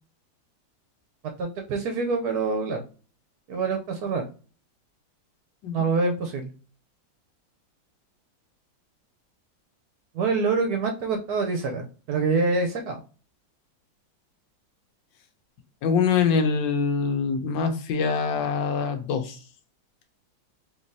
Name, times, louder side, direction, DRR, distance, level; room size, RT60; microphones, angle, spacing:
voice 1, 1.4-2.8 3.5-4.2 5.7-6.5 10.1-13.0, right 4 dB, 70° right, 4 dB, 1.0 m, -26 dB
voice 2, 5.6-6.0 15.8-19.4, left 5 dB, 80° left, 6 dB, 1.4 m, -24 dB
3.8 x 3.1 x 2.6 m, 0.37 s
omnidirectional pair, 2.0 m